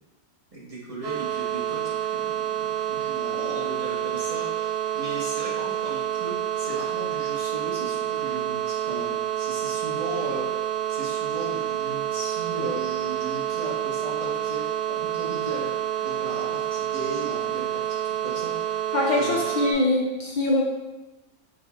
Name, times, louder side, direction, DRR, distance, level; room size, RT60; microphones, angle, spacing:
voice 1, 0.5-15.7 16.0-18.8 19.2-19.4, right 2 dB, 30° right, -5 dB, 0.9 m, -36 dB
sound 1, 1.0-19.7, right 11 dB, 50° right, 0.5 m, -28 dB
voice 2, 18.9-20.6, left 2 dB, 80° left, -1 dB, 0.4 m, -23 dB
5.6 x 3.3 x 2.3 m, 1.1 s
omnidirectional pair, 1.3 m